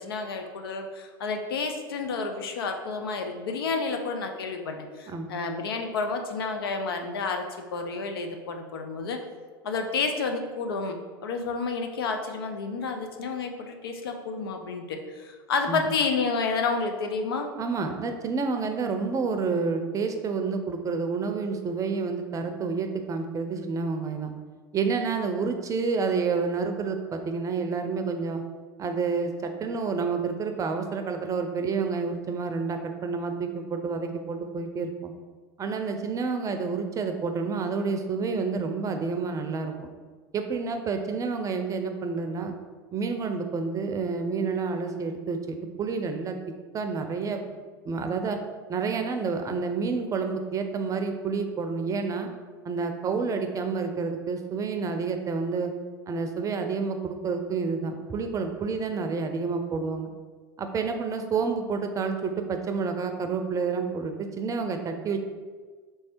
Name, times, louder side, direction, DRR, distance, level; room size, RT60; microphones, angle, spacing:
voice 1, 0.0-9.2 9.6-17.5, left 4 dB, 85° left, 5 dB, 0.6 m, -30 dB
voice 2, 17.6-24.3 24.7-28.4 28.8-35.1 35.6-39.7 40.3-42.5 42.9-46.4 46.7-47.4 47.8-48.4 48.7-52.3 52.6-55.7 56.1-60.1 60.6-65.2, right 4 dB, 25° right, 6 dB, 0.5 m, -29 dB
3.3 x 3.2 x 4.4 m, 1.5 s
hypercardioid pair, 95°, 12 cm